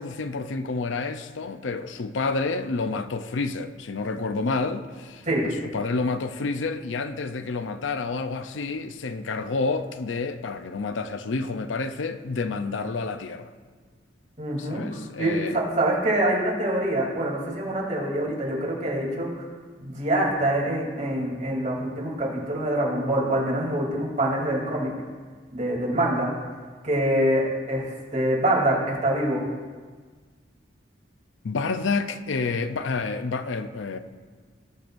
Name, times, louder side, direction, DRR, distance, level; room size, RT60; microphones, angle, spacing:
voice 1, 0.0-13.5 14.6-15.6 31.4-34.0, left 3 dB, 90° left, 0.5 m, -29 dB
voice 2, 14.4-14.8 15.2-19.4 19.8-24.9 25.5-26.3 26.8-29.4, right 1 dB, 40° right, 3.0 m, -25 dB
19.5 x 6.8 x 2.6 m
head